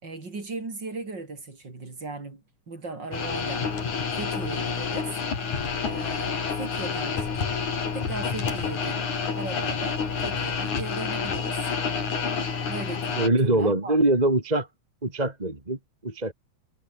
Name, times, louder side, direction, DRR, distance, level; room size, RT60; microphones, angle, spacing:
voice 1, 0.0-3.7 4.1-5.1 5.9-7.5 7.9-11.6 12.7-14.0, right 3 dB, 30° right, 4.6 m, -38 dB
sound 1, 3.1-13.3, left 5 dB, 65° left, 5.4 m, -29 dB
voice 2, 13.2-14.7 15.0-16.3, right 2 dB, 15° right, 2.3 m, -23 dB
omnidirectional pair, 3.7 m